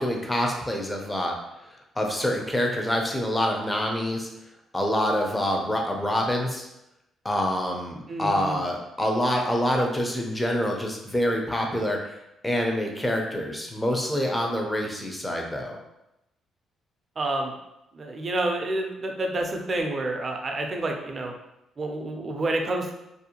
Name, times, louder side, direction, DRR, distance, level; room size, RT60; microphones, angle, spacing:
voice 1, 0.0-1.3 2.0-4.3 4.7-6.7 7.2-12.0 12.4-15.8, equal, 15° left, 1 dB, 0.5 m, -26 dB
voice 2, 8.1-8.6 17.2-17.5 17.9-21.3 21.8-22.9, right 2 dB, 40° right, 3 dB, 0.4 m, -29 dB
2.6 x 2.1 x 2.8 m, 0.88 s
cardioid pair, 90°, 0 cm